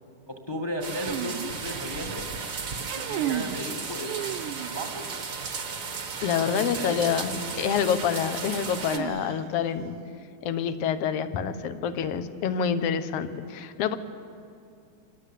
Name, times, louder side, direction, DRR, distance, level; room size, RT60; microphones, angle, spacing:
voice 1, 0.3-2.3 2.9-4.1 4.7-5.1 6.4-7.0, equal, 10° left, 3 dB, 1.4 m, -35 dB
sound 1, 0.8-9.0, right 5 dB, 45° right, 1.1 m, -35 dB
sound 2, 0.9-2.2 2.7-3.6 4.1-5.0 7.0-7.1 8.9-9.7, right 11 dB, 80° right, 2.3 m, -34 dB
voice 2, 6.2-10.0 10.4-14.0, left 7 dB, 60° left, 10 dB, 1.9 m, -27 dB
27.5 x 21.0 x 8.4 m, 2.4 s
omnidirectional pair, 3.6 m